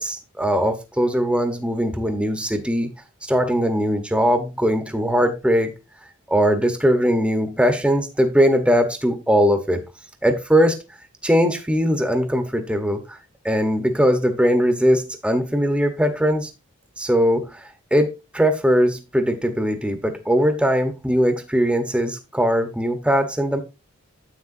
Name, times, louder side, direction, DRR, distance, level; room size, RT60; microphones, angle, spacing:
voice 1, 0.0-2.9 3.3-5.7 6.3-9.8 10.2-10.8 11.2-13.2 13.4-16.5 17.0-23.6, equal, 5° right, 0.9 m, -20 dB
9.8 x 8.0 x 2.6 m
head